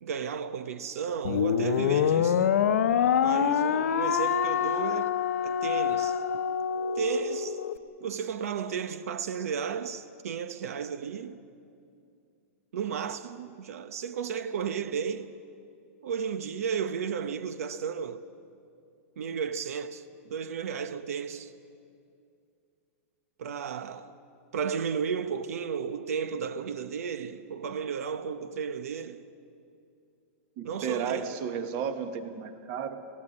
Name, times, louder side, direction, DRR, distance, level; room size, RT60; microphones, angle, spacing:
voice 1, 0.0-2.6 3.2-6.2 6.9-7.6 8.0-11.4 12.7-15.3 16.0-18.2 19.2-21.5 23.4-24.1 24.5-29.2 30.6-31.4, right 7 dB, 80° right, 0.9 m, -33 dB
sound 1, 1.2-7.8, left 8 dB, 85° left, 0.9 m, -26 dB
voice 2, 30.6-33.0, right 7 dB, 35° right, 1.3 m, -33 dB
17.5 x 17.0 x 9.8 m
supercardioid pair, 165°, 8 cm